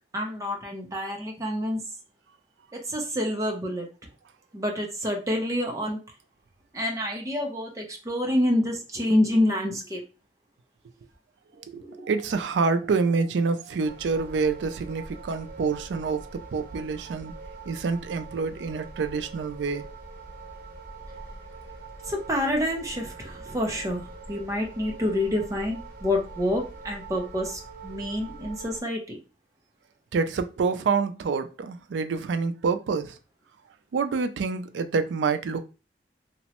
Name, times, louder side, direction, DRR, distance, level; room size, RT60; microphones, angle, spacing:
voice 1, 0.1-1.8 2.7-3.9 4.5-6.0 6.7-10.0 11.7-12.1 22.0-29.2, left 1 dB, 20° right, 0.6 m, -27 dB
voice 2, 11.6-17.3 17.7-19.9 30.1-33.2 33.9-35.6, right 4 dB, 90° right, 0.4 m, -27 dB
sound 1, 13.8-28.8, right 3 dB, 55° right, 0.8 m, -43 dB
2.9 x 2.1 x 2.9 m
head